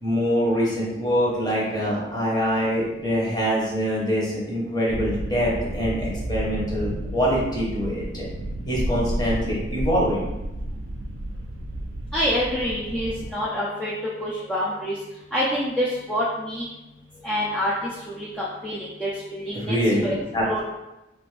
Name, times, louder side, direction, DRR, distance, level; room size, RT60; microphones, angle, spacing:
voice 1, 0.0-8.2 8.7-10.3 19.5-20.6, equal, 20° left, -5 dB, 0.8 m, -24 dB
sound 1, 4.9-13.3, right 1 dB, 85° right, 0.4 m, -31 dB
voice 2, 12.1-15.0 15.3-16.7 17.2-17.7 18.1-20.1 20.5-20.6, equal, 5° left, -8 dB, 0.3 m, -27 dB
2.5 x 2.5 x 3.2 m, 0.97 s
head